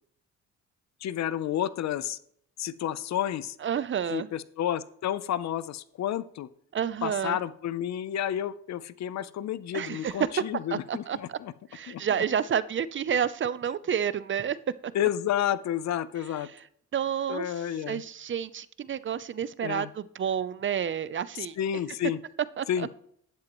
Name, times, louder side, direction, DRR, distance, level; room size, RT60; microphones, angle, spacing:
voice 1, 1.0-2.2 2.6-3.6 4.1-6.5 7.0-11.5 11.9-12.0 14.9-16.5 17.3-18.0 19.6-19.9 21.6-22.2 22.7-22.9, left 10 dB, 65° left, 16 dB, 0.7 m, -30 dB
voice 2, 3.6-4.3 6.7-7.4 9.7-10.1 10.7-11.4 11.7-14.6 16.9-21.6 22.6-22.9, right 8 dB, 40° right, 17 dB, 0.6 m, -30 dB
11.5 x 10.5 x 3.1 m, 0.68 s
cardioid pair, 90°, 30 cm